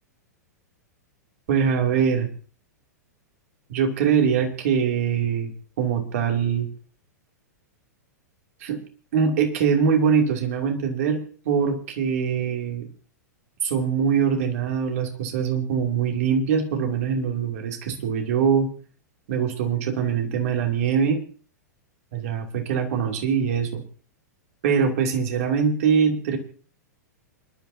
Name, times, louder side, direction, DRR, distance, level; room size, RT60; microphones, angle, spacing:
voice 1, 1.5-2.3 3.7-5.5 5.8-6.7 8.6-8.8 9.1-12.9 13.6-18.7 19.3-21.2 22.1-23.8 24.6-26.4, right 6 dB, 55° right, 4 dB, 2.7 m, -23 dB
28.0 x 11.5 x 2.8 m, 0.41 s
figure-of-eight pair, 100°, 9 cm